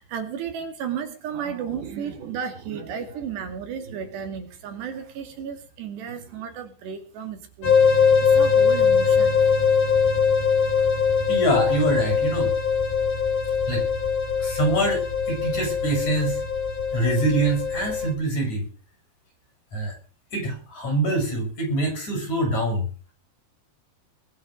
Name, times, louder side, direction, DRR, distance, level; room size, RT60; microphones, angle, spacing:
voice 1, 0.0-9.6, right 7 dB, 75° right, 6 dB, 4.6 m, -34 dB
sound 1, 7.6-18.1, left 6 dB, 60° left, 5.9 m, -21 dB
voice 2, 11.3-12.5 13.7-13.9 14.4-16.4 16.9-18.7 19.7-20.0 20.3-22.9, right 1 dB, 40° left, 2 dB, 8.1 m, -24 dB
21.5 x 8.0 x 6.5 m, 0.38 s
omnidirectional pair, 5.0 m